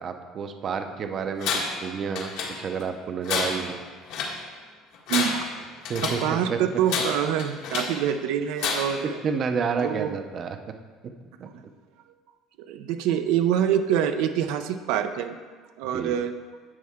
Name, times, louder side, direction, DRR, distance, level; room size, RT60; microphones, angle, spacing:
voice 1, 0.0-2.3 2.6-3.8 5.9-6.6 9.2-10.6 11.4-11.5 15.9-16.1, right 6 dB, 35° right, 6 dB, 0.6 m, -30 dB
Tools, 1.4-1.9 2.2-2.9 3.2-4.4 4.9-6.3 6.9-8.0 8.6-9.1, left 5 dB, 70° left, 1.6 m, -29 dB
voice 2, 5.1-5.7 6.0-9.2 9.8-10.1 11.4-11.6 12.6-15.4 15.8-16.3, right 9 dB, 75° right, 7 dB, 0.5 m, -26 dB
11.0 x 7.4 x 3.6 m, 1.5 s
cardioid pair, 155°, 0 cm